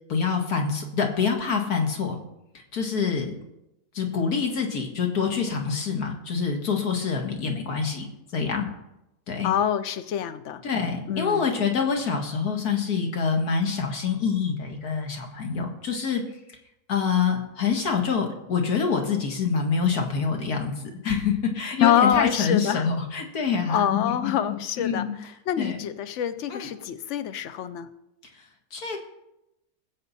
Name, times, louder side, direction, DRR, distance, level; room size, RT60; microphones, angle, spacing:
voice 1, 0.1-2.2 2.7-3.3 3.9-8.1 8.3-8.7 9.3-9.5 10.6-16.2 16.9-25.2 25.6-25.8 26.5-26.7 28.7-29.0, left 6 dB, 75° left, 3 dB, 2.1 m, -26 dB
voice 2, 9.4-10.6 11.1-11.5 21.8-22.8 23.7-25.0 25.5-27.9, left 9 dB, 60° left, 12 dB, 0.9 m, -25 dB
20.0 x 7.7 x 4.2 m, 0.90 s
omnidirectional pair, 1.6 m